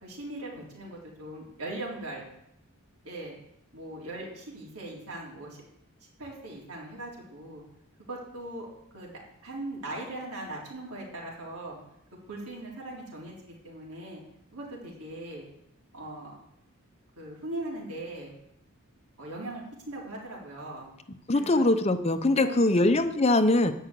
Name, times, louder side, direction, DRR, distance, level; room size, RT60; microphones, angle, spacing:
voice 1, 0.0-2.3 3.0-3.4 3.7-5.6 6.2-7.6 8.1-8.7 8.9-11.8 12.3-14.2 14.5-15.4 15.9-16.3 17.2-18.3 19.2-20.9 21.3-21.6 22.3-22.8, right 1 dB, 80° right, -4 dB, 4.1 m, -39 dB
voice 2, 21.3-23.7, left 2 dB, 30° left, 9 dB, 0.7 m, -22 dB
11.5 x 5.6 x 8.4 m, 0.78 s
head